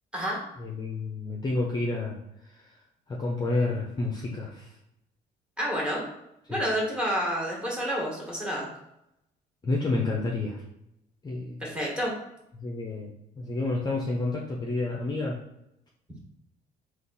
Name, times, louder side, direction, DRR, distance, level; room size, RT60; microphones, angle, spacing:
voice 1, 0.6-2.2 2.5-2.8 3.1-4.7 6.5-6.6 9.6-10.6 11.2-11.6 12.6-15.4, left 2 dB, 25° left, -2 dB, 0.7 m, -30 dB
voice 2, 5.6-6.1 6.5-8.7 11.6-12.1, equal, 5° right, -3 dB, 1.5 m, -29 dB
3.8 x 2.5 x 4.0 m, 0.83 s
cardioid pair, 110°, 17 cm